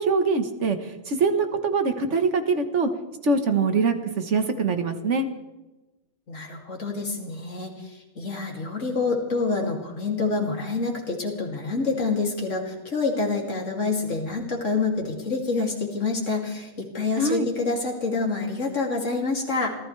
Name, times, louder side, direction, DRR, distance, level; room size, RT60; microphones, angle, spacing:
voice 1, 0.0-2.9 3.2-5.3 17.2-17.5, right 4 dB, 60° right, 7 dB, 1.6 m, -23 dB
voice 2, 6.3-19.8, left 3 dB, 65° left, 0 dB, 3.0 m, -27 dB
27.0 x 15.0 x 3.3 m, 1.1 s
omnidirectional pair, 1.4 m